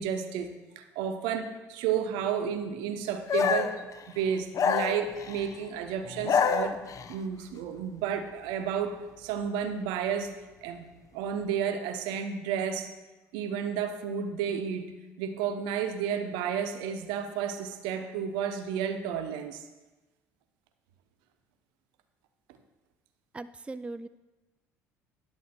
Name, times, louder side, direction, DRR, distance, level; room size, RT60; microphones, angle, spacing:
voice 1, 0.0-3.8 4.1-6.8 7.1-10.3 10.6-12.9 13.3-19.6, right 8 dB, 70° right, 9 dB, 0.9 m, -32 dB
sound 1, 3.3-3.8 4.5-5.5 6.1-7.1, left 7 dB, 45° left, 0.7 m, -27 dB
voice 2, 23.3-24.1, right 2 dB, 15° right, 13 dB, 0.4 m, -39 dB
10.5 x 7.4 x 4.3 m, 1.1 s
hypercardioid pair, 55°, 8 cm